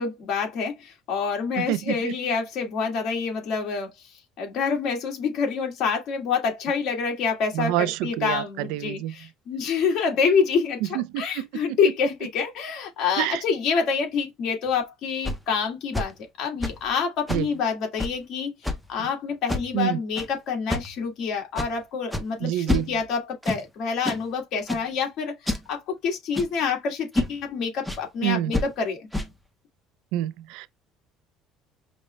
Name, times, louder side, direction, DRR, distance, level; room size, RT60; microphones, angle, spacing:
voice 1, 0.0-3.9 4.4-16.1 16.4-18.5 18.9-29.1, left 5 dB, 55° left, 1.7 m, -27 dB
voice 2, 1.6-2.1 7.5-9.1 10.9-11.8 13.2-13.4 17.3-17.5 19.0-19.1 19.7-20.0 22.4-22.9 28.2-28.5 30.1-30.7, right 14 dB, 80° right, 0.3 m, -27 dB
sound 1, 14.7-14.8 15.2-15.4 15.9-16.1 16.6-16.9 17.3-17.5 18.0-18.2 18.6-18.9 19.5-19.8 20.2-20.3 20.7-21.0 21.5-21.7 22.1-22.3 22.7-23.1 23.4-23.6 24.0-24.2 24.7-24.9 25.5-25.7 26.3-26.6 27.1-27.4 27.8-28.0 28.5-28.7 29.1-29.3, left 1 dB, ahead, 0.6 m, -28 dB
5.1 x 2.1 x 3.2 m
cardioid pair, 150°, 0 cm